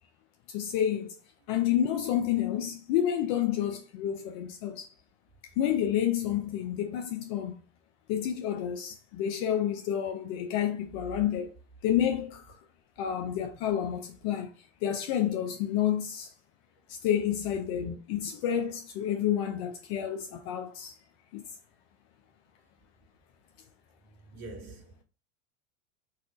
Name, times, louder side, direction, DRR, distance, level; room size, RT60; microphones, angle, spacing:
voice 1, 0.5-1.2 1.5-4.9 5.6-7.6 8.1-11.5 11.8-12.6 13.0-14.5 14.8-16.3 16.9-21.0 21.3-21.4, left 10 dB, 55° left, 0.6 m, -29 dB
voice 2, 24.3-25.0, right 2 dB, 45° right, 1.9 m, -44 dB
4.1 x 2.4 x 3.8 m
hypercardioid pair, 95°, 39 cm